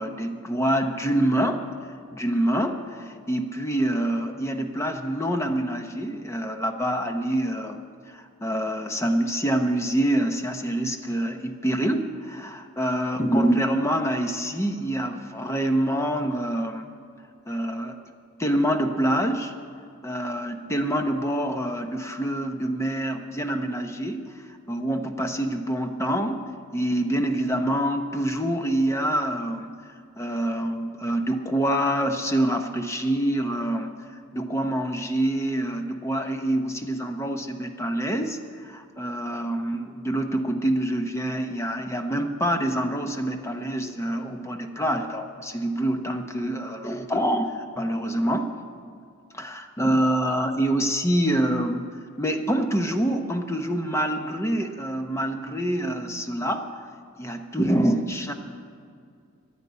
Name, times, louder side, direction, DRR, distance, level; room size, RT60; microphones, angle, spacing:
voice 1, 0.0-1.6 2.1-16.8 17.5-18.0 18.4-19.5 20.0-26.4 26.7-29.7 30.2-33.9 34.3-48.5 49.3-51.9 52.2-56.7 57.2-58.3, right 1 dB, 15° left, 5 dB, 0.8 m, -26 dB
11.0 x 9.7 x 9.5 m, 2.3 s
head